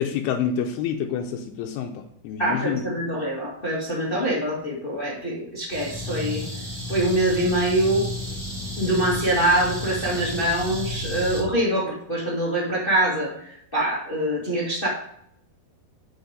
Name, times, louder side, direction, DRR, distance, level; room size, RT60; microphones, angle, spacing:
voice 1, 0.0-2.9, left 8 dB, 85° left, 4 dB, 2.6 m, -27 dB
voice 2, 2.4-6.4 6.9-8.1 8.8-14.9, right 1 dB, 30° left, -5 dB, 0.9 m, -24 dB
sound 1, 5.7-11.4, left 1 dB, 10° right, 3.8 m, -32 dB
8.1 x 5.8 x 5.0 m, 0.70 s
omnidirectional pair, 4.7 m